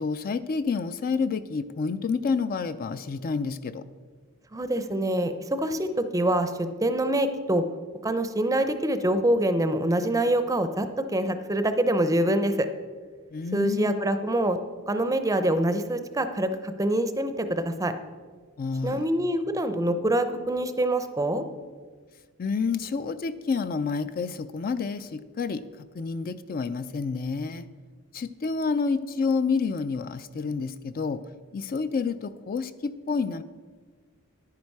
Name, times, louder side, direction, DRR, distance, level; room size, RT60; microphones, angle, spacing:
voice 1, 0.0-3.8 13.3-14.0 18.6-19.0 22.4-25.6 25.9-27.7 28.1-31.2 31.5-33.4, left 4 dB, 45° left, 12 dB, 0.4 m, -29 dB
voice 2, 4.5-7.6 8.0-12.7 13.5-14.6 14.9-17.9 18.8-21.4, right 1 dB, 15° right, 9 dB, 0.5 m, -25 dB
10.5 x 9.7 x 4.7 m, 1.5 s
head